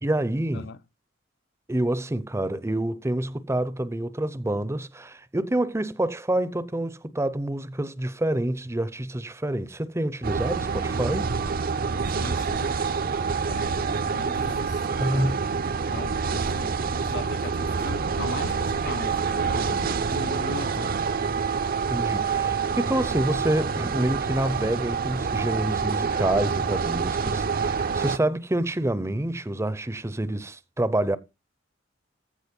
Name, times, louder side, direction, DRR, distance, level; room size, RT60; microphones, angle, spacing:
voice 1, 0.0-0.7 1.7-11.3 15.0-15.4 21.9-31.2, right 1 dB, 15° right, 0.6 m, -27 dB
sound 1, 10.2-28.2, right 5 dB, 50° right, 0.6 m, -27 dB
voice 2, 12.2-12.8 13.4-15.5 15.9-21.0, left 4 dB, 60° left, 0.5 m, -39 dB
15.0 x 5.0 x 5.3 m
head